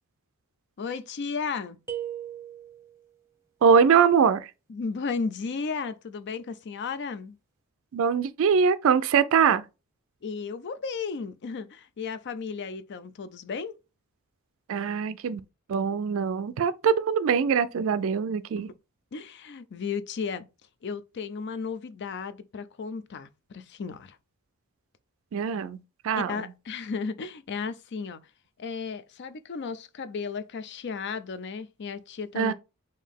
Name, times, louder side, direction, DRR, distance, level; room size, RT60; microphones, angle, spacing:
voice 1, 0.8-1.8 4.7-7.4 10.2-13.7 18.6-18.7 19.1-20.5 20.8-24.2 26.2-28.2 28.6-32.5, left 5 dB, 50° left, 0.5 m, -34 dB
sound 1, 1.9-3.1, right 10 dB, 15° right, 0.8 m, -37 dB
voice 2, 3.6-4.5 7.9-9.6 14.7-15.4 15.7-18.7 25.3-26.4 32.4-32.5, right 6 dB, 65° right, 0.3 m, -23 dB
5.5 x 2.7 x 3.5 m
head